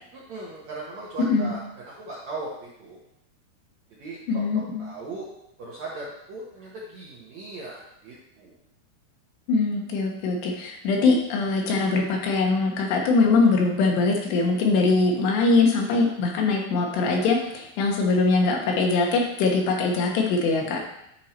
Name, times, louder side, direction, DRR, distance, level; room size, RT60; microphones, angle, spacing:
voice 1, 0.1-3.0 3.9-4.4 4.8-5.3 5.6-8.6 20.4-20.8, right 3 dB, 65° right, -5 dB, 1.8 m, -38 dB
voice 2, 4.3-4.9 9.5-20.8, left 3 dB, 80° left, 1 dB, 3.4 m, -22 dB
10.5 x 4.6 x 4.4 m, 0.80 s
omnidirectional pair, 4.9 m